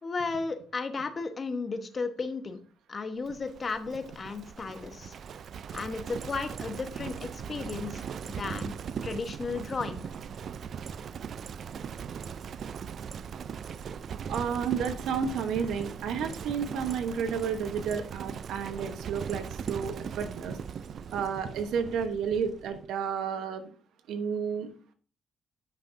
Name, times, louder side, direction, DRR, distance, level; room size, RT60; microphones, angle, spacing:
voice 1, 0.0-2.6 2.9-5.1 5.7-8.7 9.0-10.1, left 4 dB, 35° left, 8 dB, 1.0 m, -34 dB
Livestock farm animals working animals, 3.2-22.9, right 7 dB, 60° right, 0.4 m, -39 dB
voice 2, 14.3-20.6 21.1-23.7 24.1-24.7, right 6 dB, 80° right, 8 dB, 0.9 m, -31 dB
10.5 x 5.7 x 2.6 m, 0.41 s
cardioid pair, 90°, 0 cm